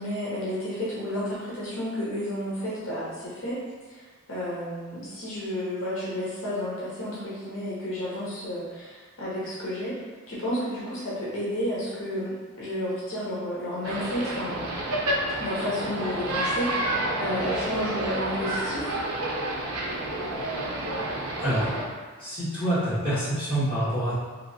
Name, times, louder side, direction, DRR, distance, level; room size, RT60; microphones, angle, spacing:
voice 1, 0.0-3.6 3.9-10.0 10.3-12.3 12.6-14.7 15.4-19.0, equal, 65° left, -8 dB, 0.6 m, -31 dB
sound 1, 13.8-21.9, right 1 dB, 90° right, 0.5 m, -29 dB
voice 2, 22.2-24.1, right 1 dB, 25° left, -12 dB, 1.3 m, -26 dB
2.8 x 2.5 x 2.6 m, 1.4 s
head